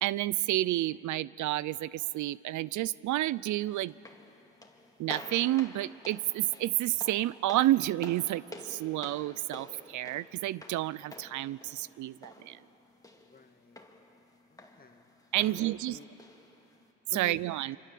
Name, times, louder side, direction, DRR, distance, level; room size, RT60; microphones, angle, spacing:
voice 1, 0.0-3.9 5.0-12.6 15.3-16.0 17.1-17.8, right 15 dB, 75° right, 20 dB, 0.5 m, -30 dB
sound 1, 3.9-16.9, left 2 dB, 10° left, 2.4 m, -50 dB
voice 2, 13.3-13.8 14.5-15.1 15.4-16.1 17.1-17.4, left 5 dB, 30° left, 7 dB, 1.7 m, -50 dB
27.0 x 24.5 x 7.6 m, 2.9 s
cardioid pair, 90°, 30 cm